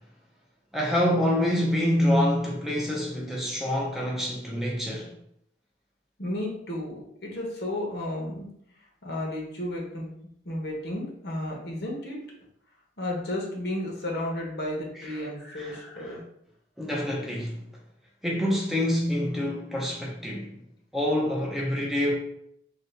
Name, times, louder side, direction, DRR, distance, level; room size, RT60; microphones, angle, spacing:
voice 1, 0.7-5.1 15.0-15.1 15.4-16.2 16.8-17.6 18.2-20.5 20.9-22.1, left 1 dB, ahead, 0.4 m, -26 dB
voice 2, 6.2-8.5 9.0-10.1 10.4-12.2 13.0-16.2, left 1 dB, 65° left, 0.9 m, -33 dB
2.7 x 2.7 x 3.2 m
head